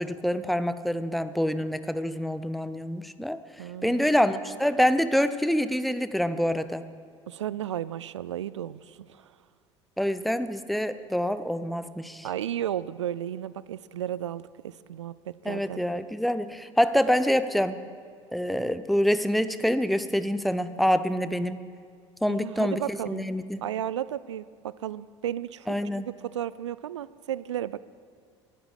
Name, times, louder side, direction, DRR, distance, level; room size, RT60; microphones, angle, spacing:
voice 1, 0.0-3.4 3.8-6.8 10.0-12.3 15.4-17.8 18.3-21.6 22.2-23.6 25.7-26.1, equal, ahead, 12 dB, 0.7 m, -26 dB
voice 2, 3.6-4.1 7.3-9.3 12.2-15.9 22.3-23.3 23.6-25.8 26.2-27.8, right 11 dB, 75° right, 18 dB, 0.4 m, -34 dB
19.5 x 12.0 x 5.0 m, 2.1 s
figure-of-eight pair, 65°, 15 cm